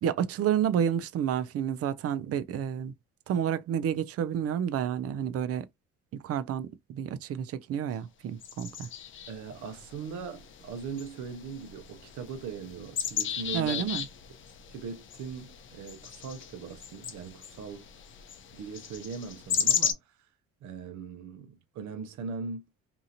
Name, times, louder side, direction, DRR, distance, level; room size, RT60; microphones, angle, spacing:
voice 1, 0.0-2.9 3.3-5.7 6.2-8.9 13.5-14.0, right 9 dB, 50° right, 0.5 m, -30 dB
sound 1, 8.4-19.9, left 8 dB, 40° left, 0.6 m, -36 dB
voice 2, 9.3-13.9 14.7-17.9 18.5-20.0 20.6-22.6, right 5 dB, 75° right, 0.8 m, -40 dB
2.8 x 2.5 x 2.7 m
cardioid pair, 95°, 29 cm